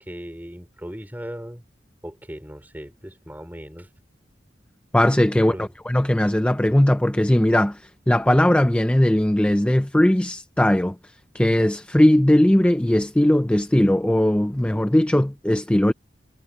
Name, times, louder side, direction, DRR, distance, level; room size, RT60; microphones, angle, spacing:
voice 1, 0.0-1.6 2.0-3.9 5.5-5.7, equal, 10° right, 3.7 m, -37 dB
voice 2, 4.9-11.0 11.3-15.9, left 1 dB, 5° left, 0.4 m, -19 dB
head